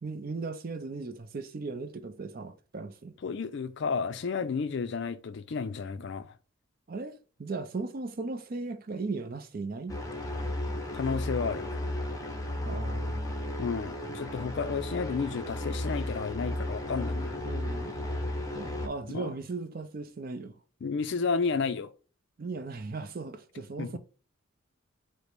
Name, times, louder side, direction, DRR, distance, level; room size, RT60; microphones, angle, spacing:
voice 1, 0.0-3.1 6.9-10.0 12.6-13.3 17.4-18.0 18.5-20.6 22.4-24.0, right 3 dB, 45° right, 0.5 m, -37 dB
voice 2, 3.2-6.3 10.9-11.9 13.6-17.6 19.1-19.3 20.8-21.9 23.8-24.0, left 5 dB, 55° left, 0.4 m, -32 dB
sound 1, 9.9-18.9, left 1 dB, 15° left, 0.6 m, -34 dB
5.0 x 2.1 x 4.5 m
head